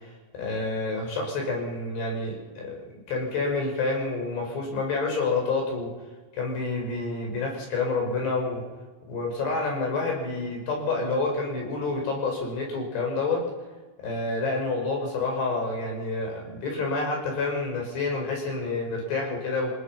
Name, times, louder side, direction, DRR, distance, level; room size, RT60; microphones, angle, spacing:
voice 1, 0.0-2.8 3.1-5.9 6.3-8.6 9.1-13.4 14.0-19.7, left 3 dB, 60° left, 1 dB, 7.1 m, -28 dB
28.0 x 19.0 x 5.9 m, 1.3 s
omnidirectional pair, 5.6 m